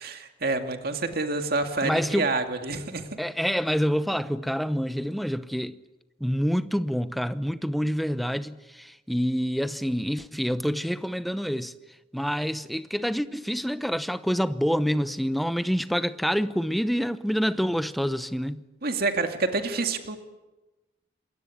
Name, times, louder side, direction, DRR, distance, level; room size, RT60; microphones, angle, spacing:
voice 1, 0.0-3.1 18.8-20.2, right 3 dB, 50° right, 2.3 m, -28 dB
voice 2, 1.8-2.3 3.2-5.8 6.2-11.7 12.1-18.6, equal, ahead, 0.8 m, -27 dB
27.5 x 21.5 x 8.6 m
head